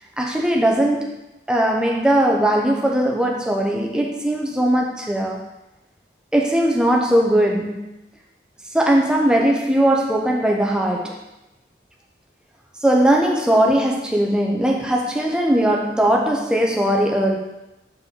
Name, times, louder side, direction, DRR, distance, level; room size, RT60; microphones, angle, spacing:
voice 1, 0.2-1.1 1.5-5.4 6.3-7.9 8.7-11.2 12.8-17.4, right 1 dB, 5° right, -1 dB, 0.7 m, -19 dB
6.6 x 4.3 x 3.7 m, 0.97 s
head